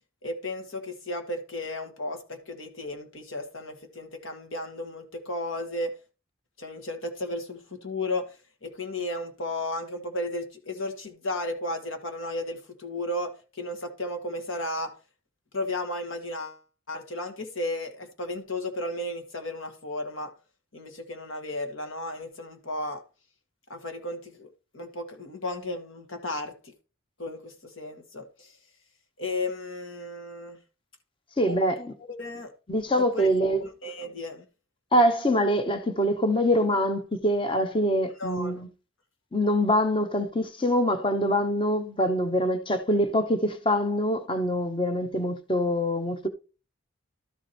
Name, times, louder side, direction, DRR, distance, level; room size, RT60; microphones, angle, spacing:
voice 1, 0.2-5.9 6.6-8.3 8.6-14.9 15.5-16.6 16.9-20.3 20.7-23.0 23.7-26.7 27.2-28.5 29.2-30.6 31.5-31.9 32.2-32.5 33.0-33.3 33.6-34.4 38.2-38.6, left 1 dB, 70° left, 1.9 m, -34 dB
voice 2, 31.4-31.8 32.7-33.6 34.9-38.7 39.3-46.3, equal, 25° left, 0.9 m, -24 dB
12.5 x 4.7 x 4.4 m
head